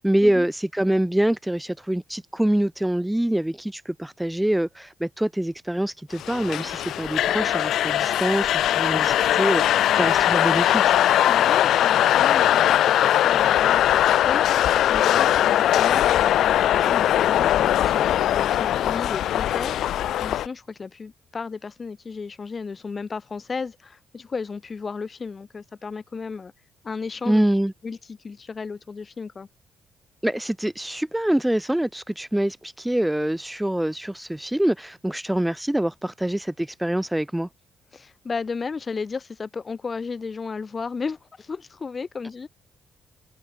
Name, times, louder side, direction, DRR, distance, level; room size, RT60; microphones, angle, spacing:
voice 1, 0.0-10.9 27.3-27.7 30.2-37.5, right 1 dB, 5° right, 0.6 m, -25 dB
sound 1, 6.2-20.5, left 12 dB, 75° left, 0.4 m, -20 dB
voice 2, 11.3-26.5 26.8-27.4 27.8-29.5 37.9-42.5, left 5 dB, 35° left, 1.4 m, -34 dB
cardioid pair, 90°, 0 cm